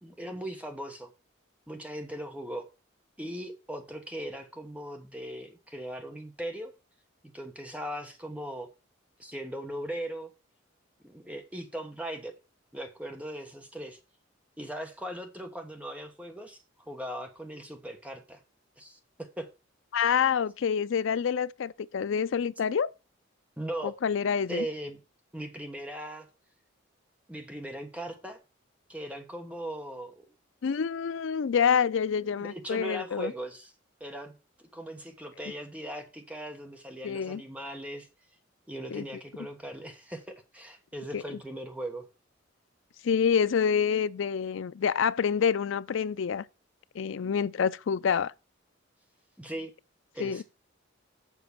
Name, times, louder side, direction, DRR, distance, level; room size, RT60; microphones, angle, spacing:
voice 1, 0.0-1.1 1.7-2.7 3.2-6.7 7.2-8.7 9.2-10.3 11.0-12.3 12.7-14.0 14.6-16.6 16.9-18.4 18.8-19.0 19.4-19.5 23.6-24.0 24.5-25.0 25.3-26.3 27.3-28.4 28.9-30.2 32.3-33.7 34.0-34.3 34.6-38.1 38.7-42.1 49.4-49.7 50.1-50.4, right 1 dB, 5° right, 1.2 m, -39 dB
voice 2, 19.9-22.9 23.8-24.7 30.6-33.3 37.0-37.4 38.9-39.0 41.1-41.4 43.0-46.4 46.9-48.3 50.2-50.4, left 7 dB, 65° left, 0.4 m, -27 dB
7.3 x 5.1 x 7.0 m
head